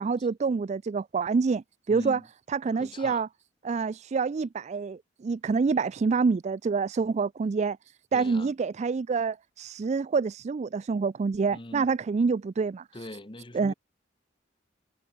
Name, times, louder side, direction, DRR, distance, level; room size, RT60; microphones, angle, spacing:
voice 1, 0.0-2.2 2.5-3.3 3.6-7.8 8.1-12.8 13.5-13.7, right 5 dB, 40° right, 0.3 m, -27 dB
voice 2, 1.9-2.3 2.8-3.2 8.1-8.5 11.5-11.9 12.9-13.7, left 1 dB, 30° left, 1.4 m, -41 dB
head